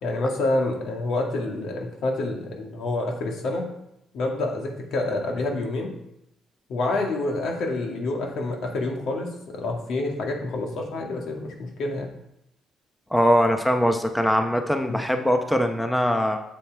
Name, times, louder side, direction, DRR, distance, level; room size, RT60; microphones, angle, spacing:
voice 1, 0.0-3.7 4.1-5.9 6.7-12.1 14.8-15.0, left 2 dB, 75° left, 1 dB, 1.9 m, -28 dB
voice 2, 13.1-16.4, equal, 5° left, 6 dB, 0.8 m, -21 dB
7.5 x 7.5 x 4.6 m, 0.80 s
cardioid pair, 90°, 0 cm